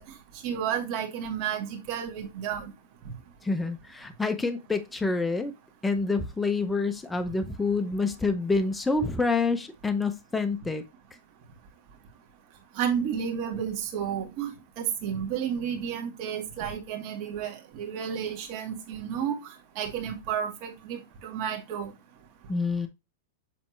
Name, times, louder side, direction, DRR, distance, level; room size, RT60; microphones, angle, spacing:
voice 1, 0.4-2.7 12.8-14.5 14.8-19.4 19.8-21.9, right 8 dB, 40° right, 2.1 m, -31 dB
voice 2, 3.4-5.5 5.8-10.8 22.5-22.9, left 3 dB, 5° left, 0.7 m, -27 dB
7.6 x 4.1 x 3.1 m
supercardioid pair, 155°, 0 cm